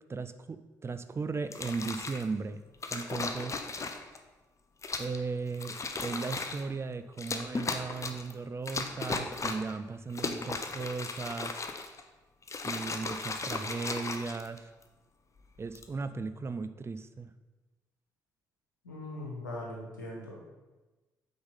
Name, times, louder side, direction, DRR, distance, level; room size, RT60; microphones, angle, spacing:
voice 1, 0.1-2.6 2.9-3.6 5.0-11.6 12.6-14.7 15.6-17.3, right 4 dB, 25° right, 10 dB, 0.5 m, -36 dB
sound 1, 1.4-2.2 2.8-4.2 4.8-5.2 5.5-6.7 7.2-8.3 8.7-9.7 10.1-12.0 12.4-14.8 15.6-15.9, left 4 dB, 30° left, 0.7 m, -36 dB
voice 2, 18.8-20.4, left 1 dB, 85° left, -2 dB, 1.2 m, -40 dB
8.6 x 3.9 x 5.5 m, 1.2 s
figure-of-eight pair, 40°, 10 cm